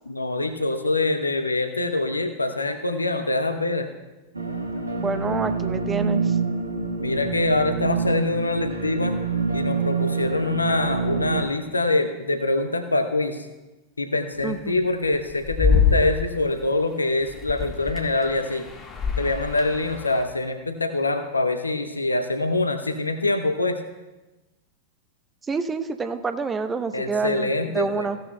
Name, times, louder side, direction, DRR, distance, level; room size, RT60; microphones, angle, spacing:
voice 1, 0.1-3.9 7.0-9.1 9.5-13.5 14.0-18.7 19.2-23.8 26.9-28.1, left 2 dB, 80° left, 8 dB, 0.8 m, -24 dB
sound 1, 4.3-11.4, right 5 dB, 80° right, 1.2 m, -26 dB
voice 2, 5.0-6.4 14.4-14.8 25.4-28.2, right 4 dB, 15° right, 9 dB, 0.7 m, -28 dB
sound 2, 14.4-16.4 17.2-20.2, left 5 dB, 25° left, 1.7 m, -25 dB
16.0 x 11.5 x 2.2 m, 1.1 s
figure-of-eight pair, 90°, 0 cm